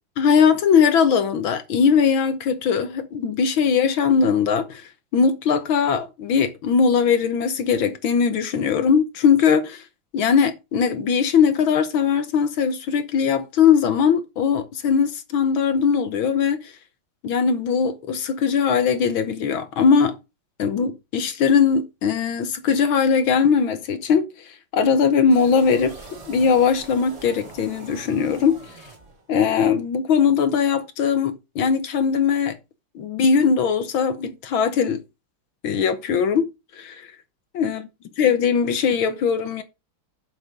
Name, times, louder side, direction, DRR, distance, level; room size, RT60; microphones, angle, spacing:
voice 1, 0.2-9.8 10.1-16.7 17.2-20.2 20.6-26.0 26.3-28.6 29.3-32.6 33.0-35.0 35.6-36.5 36.7-37.1 37.6-37.8 38.2-39.6, left 6 dB, 70° left, 1.7 m, -20 dB
sound 1, 25.3-29.5, right 3 dB, 40° right, 3.2 m, -42 dB
7.3 x 6.1 x 6.6 m
omnidirectional pair, 2.3 m